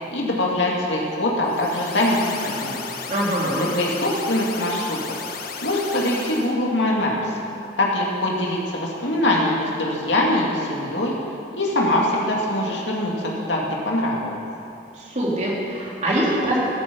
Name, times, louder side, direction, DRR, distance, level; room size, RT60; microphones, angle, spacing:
voice 1, 0.1-2.8 3.5-5.2 5.6-7.3 7.8-11.1 11.5-14.4, left 1 dB, 75° left, -3 dB, 2.5 m, -23 dB
sound 1, 1.4-6.5, left 5 dB, 55° left, 1.1 m, -34 dB
voice 2, 3.1-3.7 14.9-16.7, right 1 dB, 40° right, -5 dB, 3.4 m, -23 dB
14.5 x 12.5 x 5.5 m, 2.8 s
head